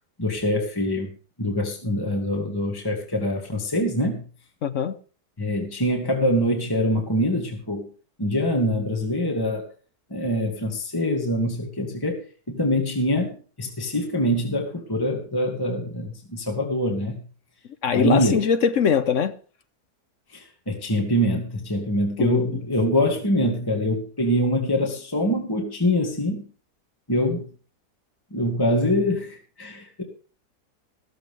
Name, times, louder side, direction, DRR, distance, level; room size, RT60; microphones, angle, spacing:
voice 1, 0.2-1.1 1.4-4.2 5.4-7.9 8.2-9.6 10.1-17.2 17.9-18.4 20.3-26.4 27.1-27.4 28.3-30.0, equal, 15° left, 1.8 m, -24 dB
voice 2, 4.6-4.9 17.8-19.3 22.2-22.6, left 7 dB, 60° left, 1.0 m, -22 dB
14.0 x 13.5 x 3.5 m
omnidirectional pair, 1.7 m